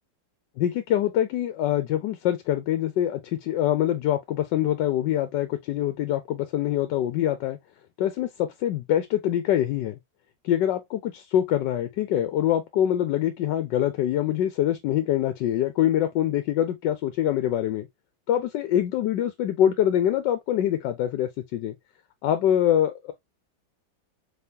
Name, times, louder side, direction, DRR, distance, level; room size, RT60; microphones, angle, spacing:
voice 1, 0.6-7.6 8.0-10.0 10.4-17.9 18.3-21.7 22.2-23.1, left 11 dB, 80° left, 1.3 m, -24 dB
4.0 x 3.7 x 2.7 m
omnidirectional pair, 1.9 m